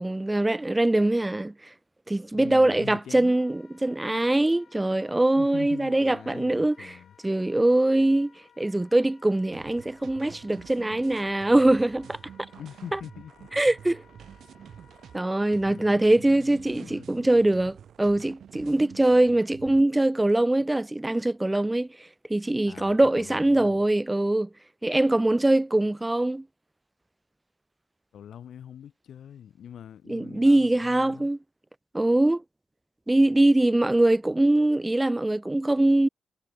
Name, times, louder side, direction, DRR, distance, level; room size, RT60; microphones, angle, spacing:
voice 1, 0.0-1.5 2.1-6.9 7.2-8.3 8.6-12.2 13.5-14.0 15.1-21.9 22.3-24.5 24.8-26.4 30.1-31.4 31.9-32.4 33.1-36.1, right 1 dB, 15° right, 0.4 m, -22 dB
voice 2, 2.3-3.4 5.3-7.2 12.5-13.5 15.5-17.5 22.7-23.8 28.1-31.3, left 9 dB, 80° left, 1.3 m, -44 dB
Wind instrument woodwind instrument, 3.2-16.0, left 7 dB, 60° left, 3.6 m, -59 dB
sound 1, 9.5-19.8, right 8 dB, 75° right, 1.9 m, -48 dB
cardioid pair, 105°, 0 cm